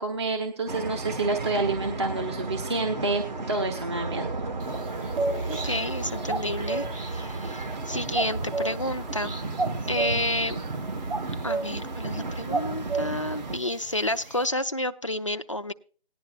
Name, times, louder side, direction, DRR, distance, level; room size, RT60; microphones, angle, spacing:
voice 1, 0.0-4.3, right 3 dB, 25° right, 3 dB, 0.9 m, -28 dB
sound 1, 0.7-13.6, right 3 dB, 45° right, 1.4 m, -33 dB
sound 2, 4.6-14.4, right 3 dB, 60° right, 2.5 m, -34 dB
voice 2, 5.5-9.4 9.9-10.6 11.4-15.7, left 1 dB, 30° left, 8 dB, 0.4 m, -30 dB
18.0 x 10.5 x 2.4 m, 0.41 s
figure-of-eight pair, 165°, 31 cm